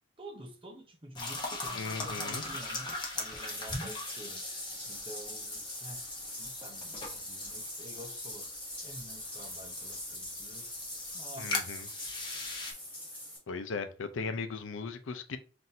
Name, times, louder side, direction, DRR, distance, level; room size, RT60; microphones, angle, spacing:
voice 1, 0.2-4.4 4.9-6.0 6.4-8.5 8.8-10.6 11.1-11.9 14.2-14.3, right 1 dB, 25° right, 0.7 m, -49 dB
sound 1, 1.1-12.7, left 2 dB, 25° left, 0.9 m, -40 dB
voice 2, 1.7-2.4 11.4-11.9 13.5-15.4, left 4 dB, 85° left, 0.6 m, -37 dB
Bathtub (filling or washing), 3.3-13.4, left 1 dB, 10° left, 2.1 m, -43 dB
5.8 x 2.6 x 2.7 m
head